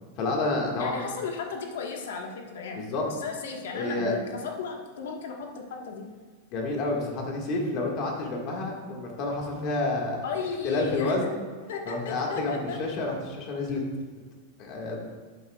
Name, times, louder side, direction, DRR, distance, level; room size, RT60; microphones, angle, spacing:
voice 1, 0.2-1.0 2.8-3.0 3.7-4.2 6.5-10.3 10.6-11.3 11.9-13.8 14.6-15.1, left 2 dB, 35° left, 0 dB, 1.7 m, -29 dB
voice 2, 0.8-2.8 3.1-6.1 10.2-11.1 11.7-12.8, left 5 dB, 80° left, 2 dB, 1.3 m, -35 dB
11.5 x 8.3 x 2.3 m, 1.5 s
supercardioid pair, 170°, 0 cm